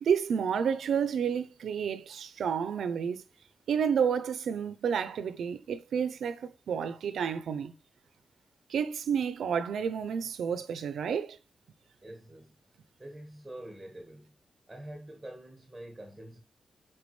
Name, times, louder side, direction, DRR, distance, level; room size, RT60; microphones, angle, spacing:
voice 1, 0.0-3.2 3.7-7.7 8.7-11.4, right 7 dB, 90° right, 0.6 m, -30 dB
voice 2, 12.0-12.5 13.0-14.3 14.7-16.4, right 1 dB, 10° right, 1.5 m, -46 dB
8.4 x 4.7 x 3.2 m
wide cardioid pair, 145°, 0 cm